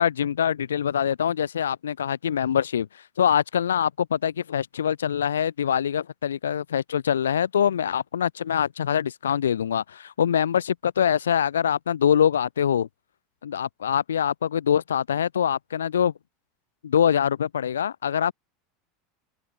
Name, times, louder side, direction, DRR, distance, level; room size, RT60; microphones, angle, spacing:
voice 1, 0.0-12.9 13.4-16.1 16.8-18.3, left 8 dB, 90° left, 5.0 m, -24 dB
hypercardioid pair, 90°, 0 cm